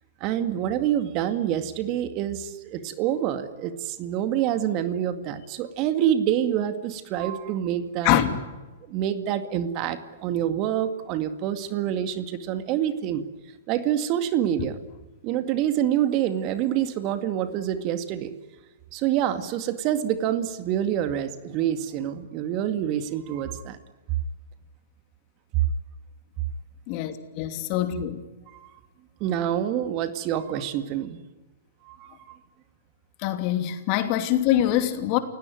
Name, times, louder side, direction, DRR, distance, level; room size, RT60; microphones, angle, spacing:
voice 1, 0.2-8.1 8.9-13.2 13.7-14.8 15.2-18.3 18.9-23.8 28.6-28.7 29.2-31.2 31.9-32.4, right 10 dB, 40° right, 2.2 m, -26 dB
voice 2, 8.0-8.4 26.9-28.2 33.2-35.2, left 12 dB, 40° left, 2.8 m, -24 dB
29.5 x 17.5 x 9.4 m
hypercardioid pair, 115°, 0 cm